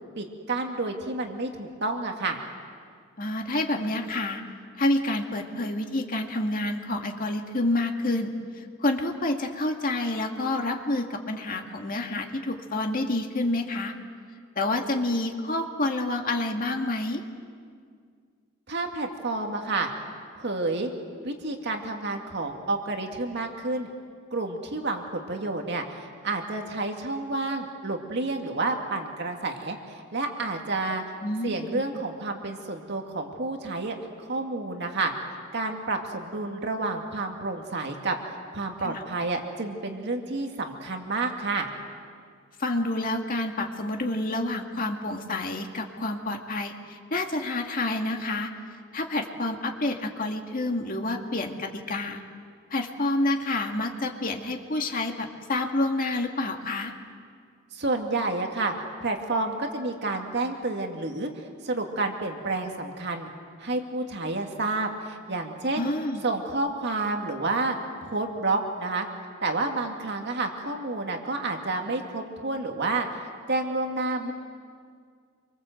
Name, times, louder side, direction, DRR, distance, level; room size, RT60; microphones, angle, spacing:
voice 1, 0.2-2.4 18.7-19.9 20.4-20.9 21.2-23.9 24.3-31.0 31.4-35.1 35.5-38.2 38.5-41.7 57.7-58.7 59.0-63.3 63.6-65.9 66.2-67.8 68.0-69.1 69.4-73.1 73.5-74.3, right 2 dB, 55° right, 3 dB, 2.2 m, -30 dB
voice 2, 3.2-4.4 4.8-13.9 14.6-17.2 31.2-31.8 38.8-39.0 42.6-48.5 48.9-52.2 52.7-56.9 65.8-66.2, left 2 dB, 45° left, 3 dB, 2.2 m, -28 dB
27.0 x 24.5 x 7.9 m, 2.1 s
head